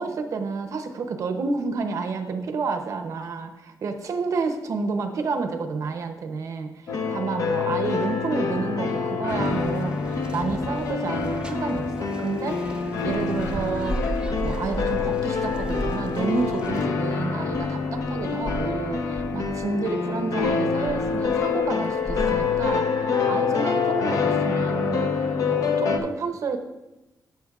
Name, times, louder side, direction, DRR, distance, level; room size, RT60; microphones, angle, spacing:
voice 1, 0.0-26.6, right 4 dB, 50° right, 7 dB, 0.7 m, -30 dB
sound 1, 6.9-26.0, left 5 dB, 60° left, 0.7 m, -26 dB
sound 2, 9.3-16.8, right 2 dB, 15° right, 0.4 m, -41 dB
sound 3, 13.0-22.7, right 1 dB, 40° left, 2.2 m, -35 dB
13.5 x 6.0 x 2.4 m, 0.99 s
wide cardioid pair, 170°, 7 cm